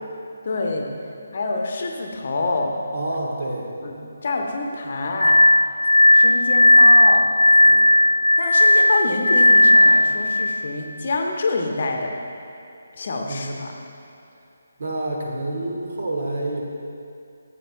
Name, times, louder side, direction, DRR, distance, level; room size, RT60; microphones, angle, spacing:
voice 1, 0.4-0.9 1.3-2.8 3.8-4.0 4.2-5.4 6.1-7.3 8.4-12.1 12.9-13.7, left 3 dB, 45° left, 2 dB, 0.9 m, -26 dB
voice 2, 2.9-3.7 7.6-7.9 13.3-13.5 14.8-16.6, right 1 dB, 55° right, 0 dB, 1.3 m, -28 dB
Glass, 5.2-10.2, left 1 dB, 80° left, 0.4 m, -14 dB
14.0 x 7.7 x 2.3 m, 2.7 s
figure-of-eight pair, 145°, 0 cm